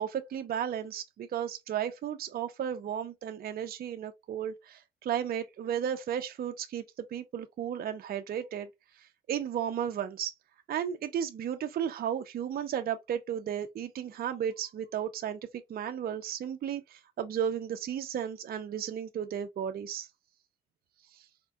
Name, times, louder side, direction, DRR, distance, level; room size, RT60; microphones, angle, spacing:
voice 1, 0.0-8.7 9.0-10.3 10.7-15.4 15.7-20.1 21.1-21.2, right 9 dB, 50° right, 0.5 m, -34 dB
4.3 x 2.2 x 2.7 m
cardioid pair, 90°, 20 cm